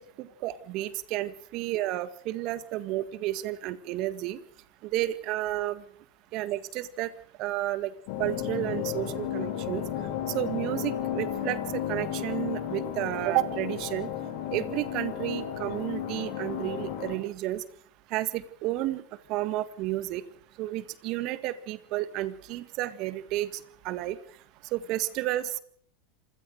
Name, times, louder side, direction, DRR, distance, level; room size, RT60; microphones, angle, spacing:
voice 1, 0.0-4.4 4.8-5.8 6.3-7.1 7.4-7.9 8.2-9.8 10.3-14.1 14.5-17.6 18.1-19.0 19.3-20.2 20.6-24.2 24.7-25.6, right 15 dB, 55° right, 15 dB, 1.8 m, -31 dB
sound 1, 8.1-17.2, left 10 dB, 65° left, 5.0 m, -33 dB
27.0 x 17.0 x 6.5 m, 0.62 s
hypercardioid pair, 100°, 0 cm